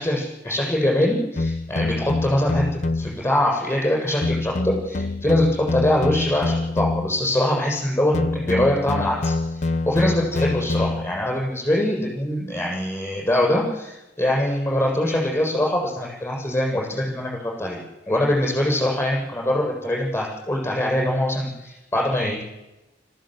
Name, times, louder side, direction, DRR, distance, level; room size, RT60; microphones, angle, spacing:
voice 1, 0.0-2.6 3.0-17.8 18.1-22.4, left 1 dB, 10° left, -1 dB, 7.6 m, -23 dB
sound 1, 1.4-3.3 4.2-7.3 8.1-11.3, left 2 dB, 40° left, 0.7 m, -25 dB
25.5 x 14.5 x 8.1 m, 0.98 s
head